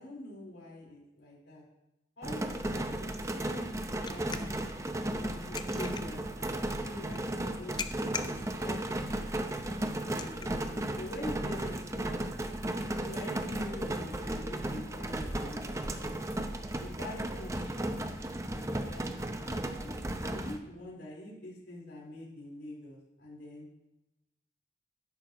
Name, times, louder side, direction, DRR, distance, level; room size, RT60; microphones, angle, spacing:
voice 1, 0.0-1.6 2.2-3.7 4.0-4.6 5.2-8.3 8.6-9.2 10.0-12.2 13.0-16.1 16.8-19.1 19.4-23.7, left 1 dB, 75° left, -5 dB, 4.1 m, -45 dB
sound 1, 2.2-20.6, right 1 dB, 15° right, 0.6 m, -35 dB
sound 2, 3.6-13.6, left 6 dB, 25° left, 0.4 m, -47 dB
sound 3, 5.6-8.9, left 2 dB, ahead, 2.1 m, -54 dB
12.5 x 10.5 x 3.0 m, 0.93 s
head